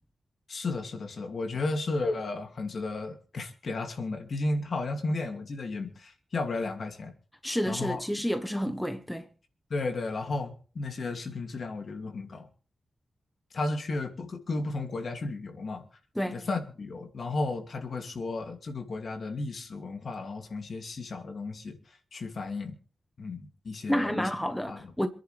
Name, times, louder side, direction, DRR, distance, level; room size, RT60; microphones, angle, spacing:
voice 1, 0.5-7.1 7.7-8.0 9.7-12.5 13.5-15.8 16.3-21.8 22.1-22.8 23.2-24.3 24.7-24.9, left 3 dB, 55° left, 2.6 m, -33 dB
voice 2, 7.4-9.3 16.1-16.4 23.9-25.1, equal, 5° left, 1.1 m, -29 dB
27.5 x 10.5 x 3.4 m
wide cardioid pair, 145°, 0 cm